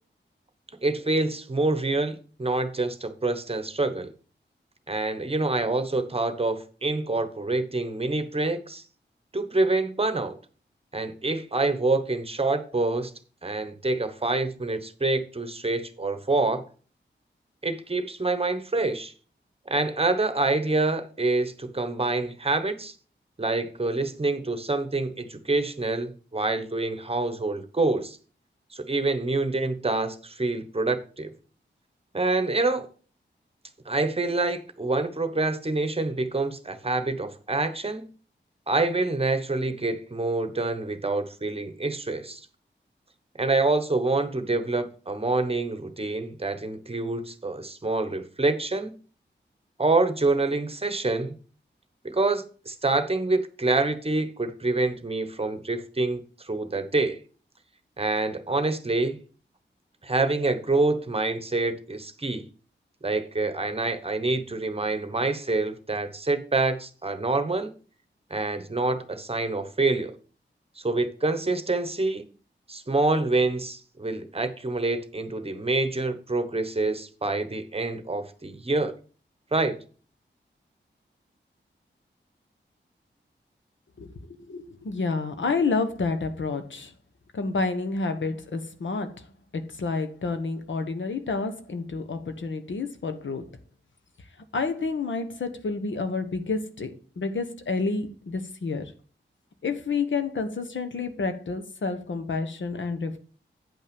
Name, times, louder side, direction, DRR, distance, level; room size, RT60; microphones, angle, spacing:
voice 1, 0.8-4.1 4.9-8.8 9.3-10.4 10.9-13.1 13.4-16.6 17.6-19.1 19.7-22.9 23.4-28.2 28.7-31.3 32.1-32.9 33.9-38.0 38.7-42.4 43.4-48.9 49.8-51.3 52.0-57.2 58.0-59.2 60.0-62.4 63.0-67.7 68.3-70.1 70.8-72.3 72.7-78.9 79.5-79.8, right 2 dB, 30° right, 1.1 m, -26 dB
voice 2, 84.0-86.9 87.3-89.3 89.5-93.4 94.5-98.9 99.6-103.2, left 4 dB, 75° left, 1.2 m, -29 dB
9.3 x 5.5 x 5.3 m
wide cardioid pair, 75°, 20 cm